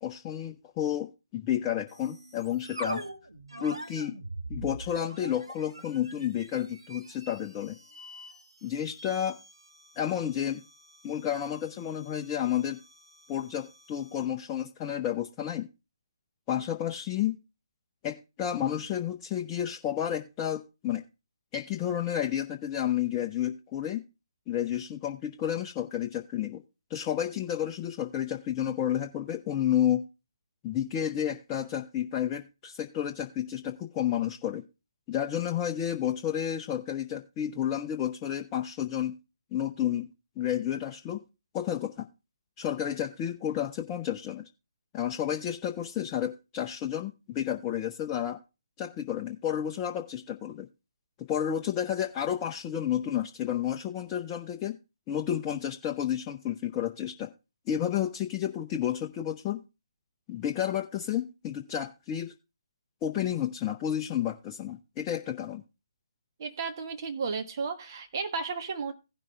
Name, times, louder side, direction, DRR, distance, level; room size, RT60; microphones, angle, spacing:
voice 1, 0.0-3.0 3.6-4.2 4.5-7.8 8.6-9.4 10.0-10.6 11.0-12.8 13.3-15.7 16.5-17.4 18.0-21.0 21.5-24.0 24.5-26.6 26.9-30.0 30.6-34.6 35.1-39.2 39.5-40.1 40.4-41.2 41.5-42.1 42.6-44.4 44.9-48.4 48.8-50.7 51.2-54.8 55.1-57.3 57.7-59.6 60.3-62.3 63.0-65.6, left 10 dB, 20° left, 3 dB, 0.6 m, -31 dB
sound 1, 1.9-14.4, right 1 dB, 85° right, 2.0 m, -44 dB
voice 2, 66.4-68.9, right 5 dB, 40° right, 6 dB, 1.5 m, -33 dB
16.0 x 6.1 x 3.3 m, 0.28 s
figure-of-eight pair, 145°, 3 cm